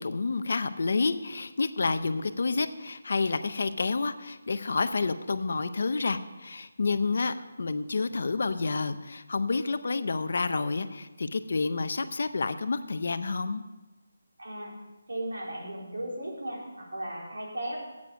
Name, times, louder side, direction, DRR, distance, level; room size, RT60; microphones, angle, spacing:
voice 1, 0.0-13.6, left 4 dB, 50° left, 11 dB, 0.6 m, -29 dB
voice 2, 14.4-14.7 15.1-17.8, right 1 dB, 85° right, -2 dB, 3.9 m, -36 dB
9.3 x 8.4 x 6.3 m, 1.1 s
hypercardioid pair, 175°, 0 cm